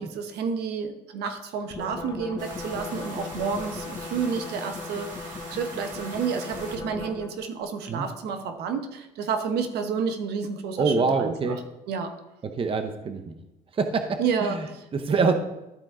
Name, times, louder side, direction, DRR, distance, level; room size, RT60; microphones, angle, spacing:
voice 1, 0.0-11.6 11.9-12.1 14.2-14.9, right 6 dB, 75° right, 7 dB, 1.1 m, -30 dB
sound 1, 1.7-7.5, left 4 dB, 20° left, 1.1 m, -38 dB
sound 2, 2.4-6.8, right 2 dB, 50° right, 2.3 m, -42 dB
voice 2, 10.8-11.6 12.5-13.4 13.7-14.7 14.9-15.3, right 4 dB, 30° right, 7 dB, 0.8 m, -25 dB
13.0 x 4.5 x 3.7 m, 0.92 s
cardioid pair, 110°, 17 cm